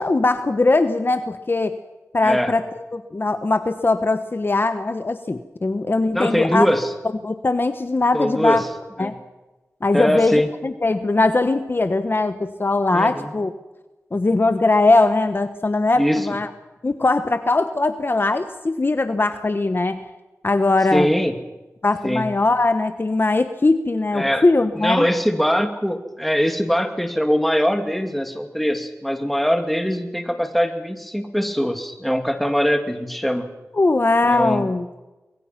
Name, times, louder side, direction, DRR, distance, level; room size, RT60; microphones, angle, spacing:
voice 1, 0.0-1.8 2.1-2.6 2.9-6.7 7.2-8.6 9.0-9.2 9.8-13.5 14.1-16.5 16.8-20.1 20.4-21.1 21.8-25.1 33.7-35.0, left 2 dB, 40° left, 9 dB, 1.2 m, -20 dB
voice 2, 2.2-2.5 6.1-6.9 8.1-8.6 9.0-9.1 9.9-10.5 12.9-13.3 16.0-16.3 20.9-21.3 22.0-22.3 24.1-24.4 24.8-33.4 34.2-34.6, equal, ahead, 6 dB, 2.6 m, -22 dB
24.5 x 21.5 x 6.0 m, 1.1 s
wide cardioid pair, 70°, 5 cm